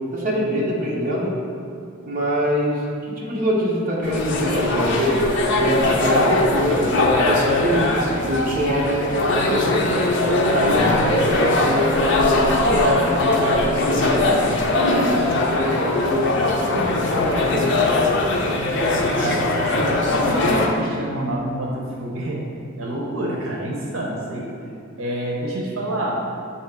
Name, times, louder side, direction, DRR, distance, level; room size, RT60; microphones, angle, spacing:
voice 1, 0.1-1.4 2.0-5.2 5.5-7.9 8.2-9.9 10.3-14.6 15.3-18.0, equal, 45° right, -4 dB, 0.9 m, -24 dB
sound 1, 4.0-20.7, left 2 dB, 60° left, 0.6 m, -21 dB
voice 2, 19.1-22.4 22.8-24.5 25.0-26.1, right 1 dB, 75° right, -2 dB, 0.8 m, -27 dB
7.1 x 2.9 x 4.6 m, 2.4 s
head